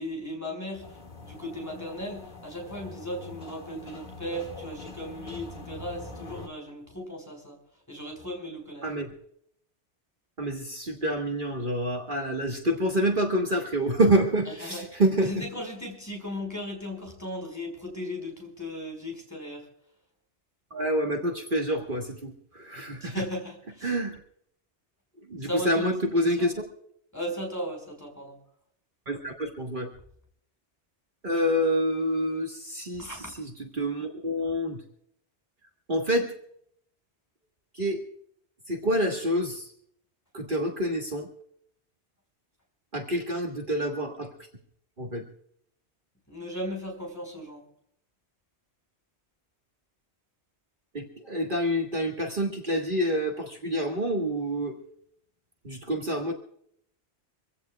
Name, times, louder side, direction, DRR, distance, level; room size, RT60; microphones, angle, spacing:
voice 1, 0.0-7.6 7.9-8.9 14.6-19.7 23.0-24.0 25.4-26.0 26.3-26.5 27.1-28.4 33.0-33.3 46.3-47.6, equal, 15° left, 1 dB, 4.8 m, -36 dB
sound 1, 0.8-6.5, left 2 dB, 40° left, 2.2 m, -44 dB
voice 2, 10.4-15.4 20.7-23.1 23.8-24.2 25.3-26.5 29.1-29.9 31.2-34.8 35.9-36.3 37.7-38.0 38.7-39.7 40.3-41.3 42.9-44.3 45.0-45.2 50.9-54.8 55.6-56.3, equal, 50° right, 2 dB, 1.6 m, -27 dB
25.5 x 16.0 x 2.3 m, 0.67 s
omnidirectional pair, 1.2 m